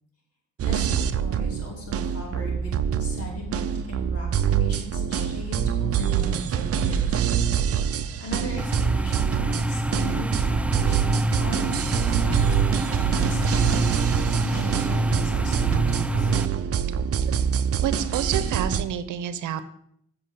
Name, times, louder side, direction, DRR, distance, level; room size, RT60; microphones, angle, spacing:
voice 1, 0.6-7.2 7.9-16.3, left 1 dB, 50° left, -2 dB, 4.8 m, -38 dB
sound 1, 0.6-18.8, right 8 dB, 50° right, 0.7 m, -25 dB
sound 2, 8.6-16.5, right 1 dB, 5° right, 0.3 m, -27 dB
voice 2, 17.8-19.6, right 9 dB, 80° right, 13 dB, 0.9 m, -29 dB
8.3 x 6.1 x 7.6 m, 0.68 s
cardioid pair, 90°, 30 cm